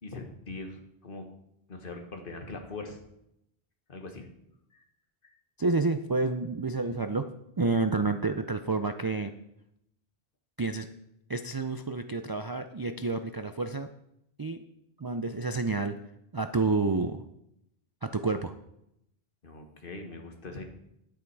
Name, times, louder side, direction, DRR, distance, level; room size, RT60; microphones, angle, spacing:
voice 1, 0.0-1.3 1.7-3.0 3.9-4.3 4.7-4.9 5.2-5.3 19.4-20.6, left 3 dB, 55° left, 4 dB, 1.6 m, -41 dB
voice 2, 5.6-7.3 7.6-9.3 10.6-10.9 11.3-13.9 14.4-14.6 15.0-15.9 16.3-17.2 18.0-18.5, right 3 dB, 40° right, 8 dB, 0.3 m, -29 dB
10.0 x 8.7 x 4.7 m, 0.80 s
omnidirectional pair, 1.1 m